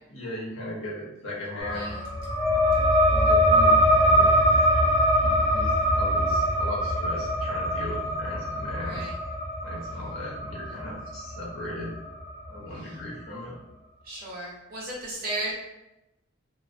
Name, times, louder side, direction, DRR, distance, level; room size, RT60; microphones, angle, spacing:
voice 1, 0.1-1.9 2.4-4.5 4.8-4.9 5.2-9.0 9.6-11.9 12.5-13.5, left 1 dB, 90° left, -5 dB, 0.9 m, -37 dB
sound 1, 1.6-12.7, equal, 30° left, 0.5 m, -23 dB
voice 2, 1.7-2.0 8.8-9.1 12.8-13.0 14.0-15.5, right 1 dB, 45° right, -5 dB, 0.7 m, -35 dB
2.2 x 2.2 x 2.5 m, 0.93 s
head